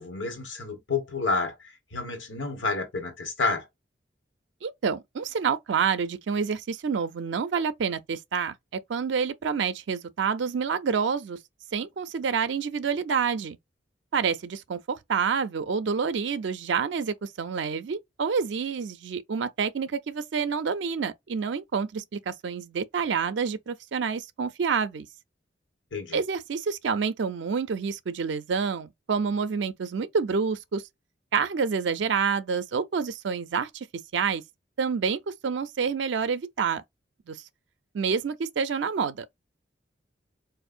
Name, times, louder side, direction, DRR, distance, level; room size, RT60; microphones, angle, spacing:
voice 1, 0.0-3.6 25.9-26.2, left 3 dB, 85° left, 1.3 m, -30 dB
voice 2, 4.6-11.4 11.7-13.6 14.1-25.1 26.1-30.8 31.3-33.9 34.1-34.4 34.8-36.8 37.3-37.4 37.9-39.3, right 6 dB, 70° right, 0.4 m, -28 dB
4.3 x 2.5 x 2.5 m
head